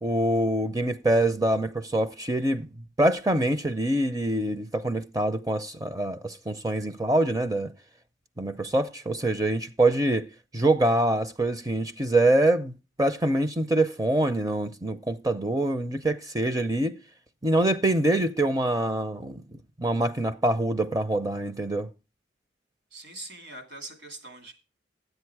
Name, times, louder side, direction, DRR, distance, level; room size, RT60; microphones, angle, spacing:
voice 1, 0.0-2.7 3.0-7.7 8.4-10.3 10.5-12.7 13.0-17.0 17.4-21.9, right 1 dB, 20° right, 0.5 m, -25 dB
voice 2, 22.9-24.5, right 2 dB, 70° right, 2.6 m, -42 dB
10.0 x 7.9 x 4.6 m
head